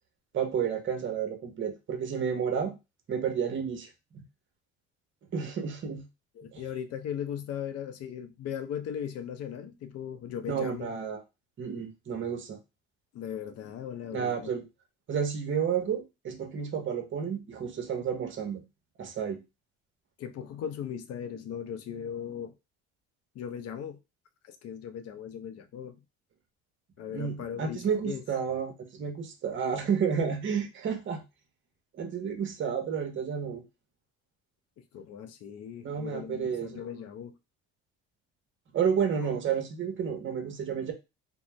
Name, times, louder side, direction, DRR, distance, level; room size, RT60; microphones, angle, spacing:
voice 1, 0.3-2.7 3.1-3.9 4.1-4.2 5.3-6.0 6.5-6.6 10.5-11.2 11.6-12.6 14.1-14.6 15.1-18.6 19.0-19.4 27.1-31.2 32.0-33.6 35.8-36.8 38.7-40.9, right 7 dB, 40° right, 0.8 m, -31 dB
voice 2, 6.4-11.1 13.1-14.5 20.2-22.5 23.3-24.0 24.4-26.0 27.0-28.2 34.9-37.3, left 8 dB, 55° left, 0.5 m, -38 dB
2.6 x 2.0 x 3.2 m
cardioid pair, 100°, 30 cm